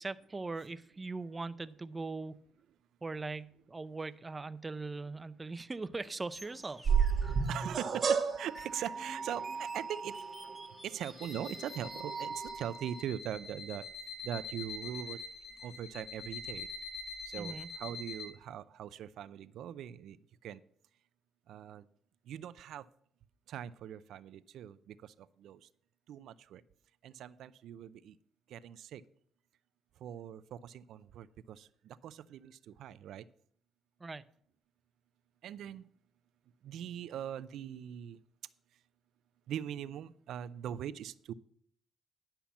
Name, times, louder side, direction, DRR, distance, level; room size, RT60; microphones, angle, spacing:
voice 1, 0.0-2.4 3.0-6.9 17.3-17.7 34.0-34.3, right 3 dB, 25° right, 15 dB, 0.5 m, -40 dB
sound 1, 6.3-12.3, equal, 5° left, 1.5 m, -53 dB
sound 2, 6.9-13.0, right 6 dB, 45° right, 1.3 m, -34 dB
voice 2, 7.5-10.1 10.8-13.8 14.2-15.2 15.6-16.7 17.3-20.2 20.4-20.6 21.5-21.8 22.3-22.8 23.5-25.1 25.4-25.6 26.1-26.6 27.0-28.1 28.5-29.0 30.0-33.2 35.4-35.8 36.6-38.2 39.5-41.3, right 10 dB, 80° right, 16 dB, 0.5 m, -41 dB
sound 3, 11.2-18.3, left 4 dB, 50° left, 3.8 m, -45 dB
10.5 x 5.7 x 7.1 m, 0.62 s
cardioid pair, 90°, 0 cm